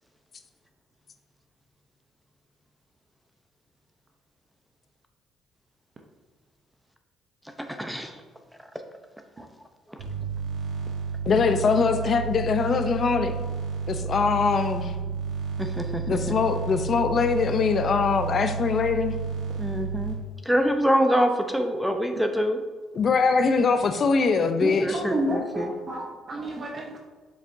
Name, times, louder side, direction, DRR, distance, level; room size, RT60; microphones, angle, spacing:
voice 1, 7.8-8.2 9.4-9.5 9.9-10.0 15.6-16.3 19.6-22.6 24.6-25.7, equal, 5° right, 5 dB, 0.8 m, -26 dB
sound 1, 10.0-20.1, right 5 dB, 70° right, 2.0 m, -31 dB
voice 2, 11.3-13.4 13.9-14.9 16.1-19.1 22.9-25.0, left 5 dB, 50° left, 8 dB, 0.6 m, -22 dB
voice 3, 24.6-27.0, right 1 dB, 40° right, 1 dB, 0.9 m, -30 dB
7.2 x 6.3 x 2.7 m, 1.4 s
supercardioid pair, 70°, 0 cm